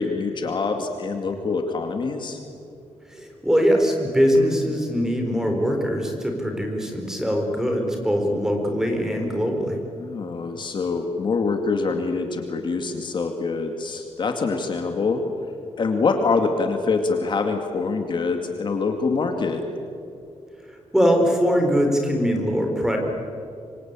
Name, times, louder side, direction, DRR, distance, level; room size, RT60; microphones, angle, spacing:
voice 1, 0.0-2.4 10.0-15.2 15.8-19.6, left 4 dB, 45° left, 5 dB, 2.2 m, -25 dB
voice 2, 3.1-9.8 20.9-23.0, equal, 5° right, 3 dB, 4.2 m, -22 dB
25.5 x 25.5 x 9.0 m, 2.5 s
wide cardioid pair, 160°, 11 cm